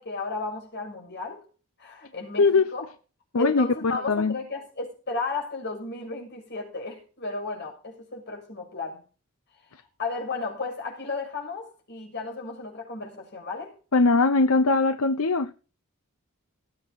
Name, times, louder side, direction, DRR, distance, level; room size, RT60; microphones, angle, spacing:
voice 1, 0.0-1.4 1.8-2.8 3.4-9.0 10.0-13.7, left 3 dB, 50° left, 6.8 m, -34 dB
voice 2, 2.4-2.7 3.3-4.3 13.9-15.5, left 3 dB, 75° left, 0.8 m, -21 dB
19.0 x 8.3 x 4.2 m
head